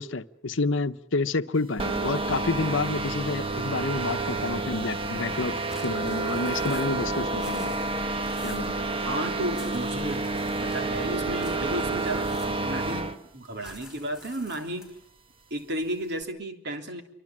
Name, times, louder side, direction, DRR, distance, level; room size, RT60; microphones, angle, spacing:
voice 1, 0.0-5.6 5.8-7.8 8.4-8.8, left 3 dB, 70° left, 11 dB, 0.9 m, -29 dB
sound 1, 1.8-13.2, right 3 dB, 25° right, 1.4 m, -29 dB
sound 2, 5.7-7.0 7.3-8.8 9.5-11.0 11.3-12.8 13.6-15.0, left 2 dB, 5° right, 5.3 m, -49 dB
voice 2, 9.0-14.9 15.5-17.0, right 1 dB, 55° right, 4 dB, 3.2 m, -33 dB
27.0 x 24.5 x 7.5 m, 0.76 s
head